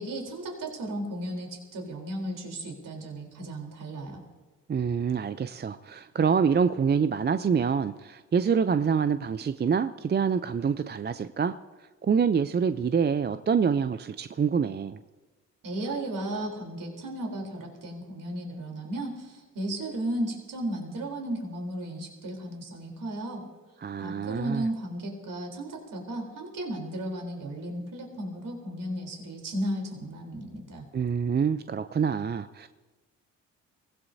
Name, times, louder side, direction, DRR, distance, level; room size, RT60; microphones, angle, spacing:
voice 1, 0.0-4.2 15.6-23.4 24.0-30.8, right 1 dB, 55° right, 1 dB, 3.9 m, -34 dB
voice 2, 4.7-11.5 12.0-15.0 23.8-24.7 30.9-32.7, right 6 dB, 25° right, 12 dB, 0.6 m, -26 dB
23.5 x 17.0 x 2.8 m, 1.3 s
hypercardioid pair, 50°, 38 cm